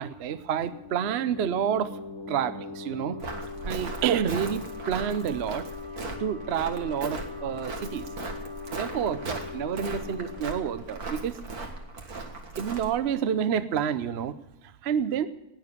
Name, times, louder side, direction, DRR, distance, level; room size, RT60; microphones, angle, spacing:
voice 1, 0.0-1.9 2.3-3.2 3.6-5.7 6.2-8.1 8.7-11.7 12.6-14.3 14.8-15.3, right 8 dB, 55° right, 12 dB, 0.9 m, -29 dB
sound 1, 0.7-12.1, left 4 dB, 85° left, 3.4 m, -41 dB
Walk footsteps, 3.2-13.0, right 3 dB, 80° right, 2.2 m, -38 dB
19.0 x 7.0 x 9.8 m, 0.97 s
omnidirectional pair, 1.6 m